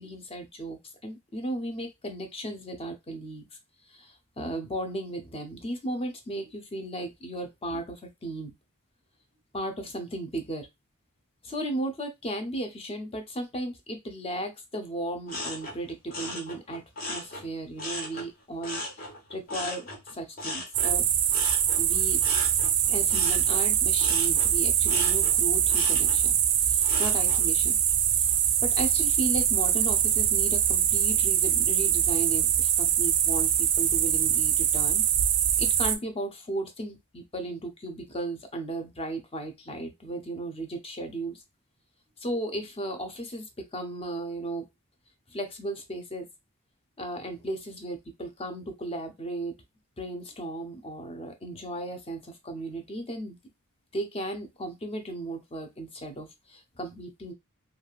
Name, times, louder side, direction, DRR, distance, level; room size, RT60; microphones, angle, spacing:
voice 1, 0.0-3.4 3.9-8.5 9.5-10.7 11.4-21.0 21.8-22.2 22.9-26.4 26.6-27.8 28.1-28.3 28.6-35.0 35.6-41.4 42.2-44.7 45.3-46.3 47.0-49.6 50.0-53.4 53.9-57.3, right 1 dB, 25° left, 5 dB, 0.6 m, -35 dB
sound 1, 15.3-18.3 18.6-27.5 27.9-28.4, left 1 dB, 45° left, 1.0 m, -38 dB
sound 2, 20.7-35.9, right 9 dB, 90° right, 0.4 m, -23 dB
3.3 x 2.3 x 2.3 m, 0.20 s
head